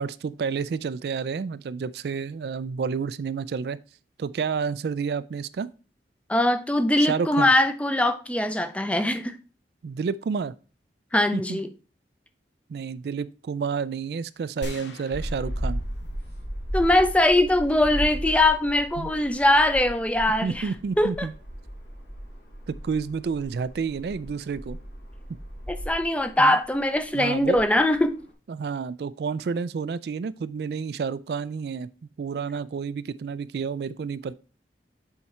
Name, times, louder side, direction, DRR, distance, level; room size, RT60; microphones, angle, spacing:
voice 1, 0.0-3.8 4.2-5.7 7.0-7.5 9.8-10.5 11.3-11.6 12.7-15.8 19.0-19.1 20.4-21.3 22.7-24.8 26.4-26.6 27.1-27.6 28.5-31.9 32.2-34.3, right 5 dB, 60° right, 0.3 m, -30 dB
voice 2, 6.3-9.3 11.1-11.7 16.7-20.7 21.0-21.3 25.7-28.2, left 1 dB, 5° left, 0.5 m, -22 dB
sound 1, 14.6-16.6 16.9-17.0, left 1 dB, 80° left, 0.9 m, -41 dB
sound 2, 15.1-28.3, equal, 65° left, 3.1 m, -36 dB
7.1 x 4.8 x 4.3 m
head